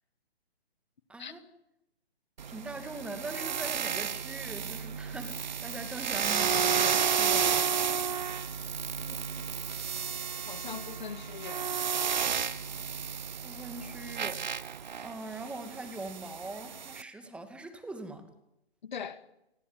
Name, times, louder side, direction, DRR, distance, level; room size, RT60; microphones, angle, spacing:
voice 1, 1.1-1.4 2.5-7.8 13.4-14.4 15.0-18.3, right 2 dB, 5° right, 2.2 m, -42 dB
sound 1, 2.4-17.0, right 7 dB, 45° right, 1.1 m, -32 dB
voice 2, 9.0-9.6 10.5-11.7 18.8-19.2, left 7 dB, 45° left, 2.3 m, -42 dB
30.0 x 19.5 x 9.1 m
figure-of-eight pair, 135°, 31 cm